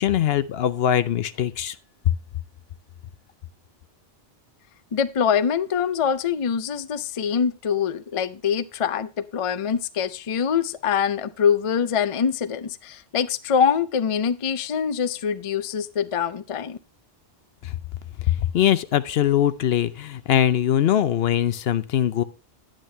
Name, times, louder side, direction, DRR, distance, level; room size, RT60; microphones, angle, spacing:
voice 1, 0.0-1.8 17.6-17.7 18.3-22.2, left 10 dB, 65° left, 14 dB, 0.8 m, -22 dB
voice 2, 4.9-16.8, left 7 dB, 40° left, 13 dB, 0.5 m, -24 dB
10.0 x 9.0 x 3.3 m, 0.32 s
omnidirectional pair, 1.1 m